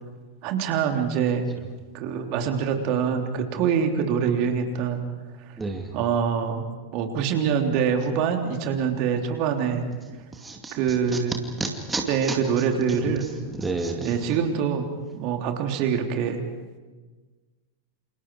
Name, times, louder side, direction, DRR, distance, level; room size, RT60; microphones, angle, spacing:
voice 1, 0.4-1.5 1.9-5.0 5.9-6.6 6.9-9.8 10.7-11.4 12.1-13.3 14.0-14.8 15.1-16.4, right 7 dB, 45° right, 4 dB, 3.3 m, -24 dB
voice 2, 5.6-5.9 10.4-10.8 11.6-12.0 12.3-12.4 13.0-13.1 13.4-14.1, right 3 dB, 10° right, 2 dB, 2.4 m, -30 dB
29.0 x 28.5 x 4.8 m, 1.3 s
figure-of-eight pair, 90°, 0 cm